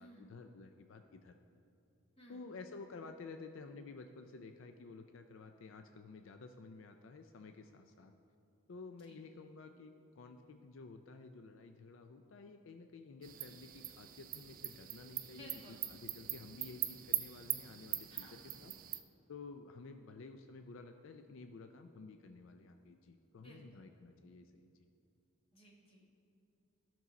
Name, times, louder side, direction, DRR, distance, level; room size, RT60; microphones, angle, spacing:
voice 1, 0.0-1.3 2.3-8.1 8.7-19.0 19.3-24.9, left 3 dB, 65° left, 6 dB, 0.4 m, -52 dB
sound 1, 13.2-19.0, right 13 dB, 40° right, 0.4 m, -42 dB
voice 2, 15.3-15.8 18.1-18.4 23.4-23.8 25.5-26.2, equal, 25° left, -2 dB, 1.4 m, -58 dB
13.5 x 6.1 x 4.0 m, 2.6 s
head